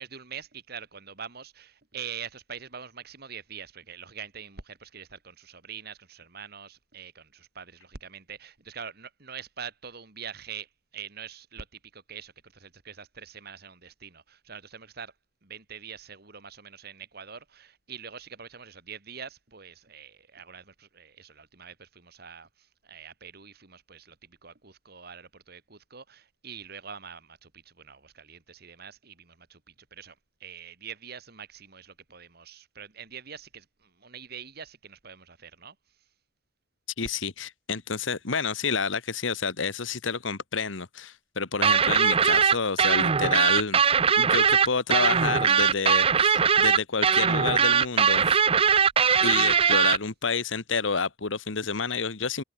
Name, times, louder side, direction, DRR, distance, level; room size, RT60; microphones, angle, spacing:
voice 1, 0.0-15.1 15.4-30.2 30.4-35.8, right 7 dB, 55° right, 2.1 m, -44 dB
voice 2, 37.0-43.8 44.2-48.4 49.2-52.4, left 5 dB, 85° left, 1.4 m, -29 dB
sound 1, 41.6-50.0, right 6 dB, 30° right, 0.5 m, -21 dB
open air
head